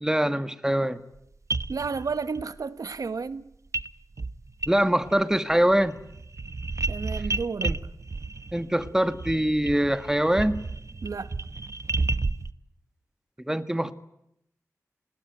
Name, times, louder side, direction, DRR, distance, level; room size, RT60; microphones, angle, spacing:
voice 1, 0.0-1.0 4.7-6.0 7.6-7.8 8.5-10.6 13.4-13.9, right 1 dB, 10° right, 1.6 m, -23 dB
sound 1, 1.2-1.3 1.5-2.4 3.7-3.9 4.2-5.2 5.5-12.5, right 3 dB, 55° right, 1.0 m, -32 dB
voice 2, 1.7-3.5 6.9-7.8 11.0-11.3, right 5 dB, 75° right, 1.3 m, -32 dB
27.0 x 20.0 x 9.2 m
cardioid pair, 40°, 6 cm